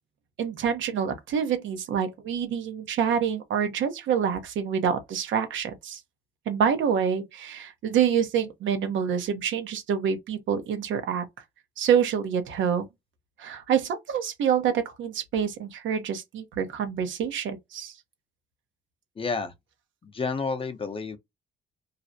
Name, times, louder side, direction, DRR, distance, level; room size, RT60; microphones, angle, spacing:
voice 1, 0.4-6.0 6.5-11.2 11.8-12.9 13.4-17.9, right 8 dB, 75° right, 0.7 m, -27 dB
voice 2, 19.2-19.5 20.0-21.2, left 4 dB, 30° left, 0.5 m, -30 dB
2.4 x 2.1 x 2.6 m
cardioid pair, 90°, 20 cm